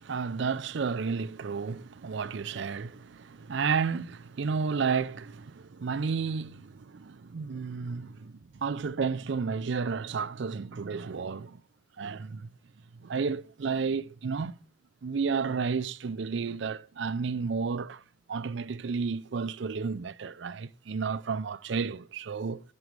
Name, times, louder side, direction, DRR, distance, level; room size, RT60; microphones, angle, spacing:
voice 1, 0.0-11.6 12.0-12.5 13.0-14.5 15.0-18.0 18.3-22.6, right 5 dB, 60° right, 0.4 m, -32 dB
9.3 x 6.3 x 6.3 m
head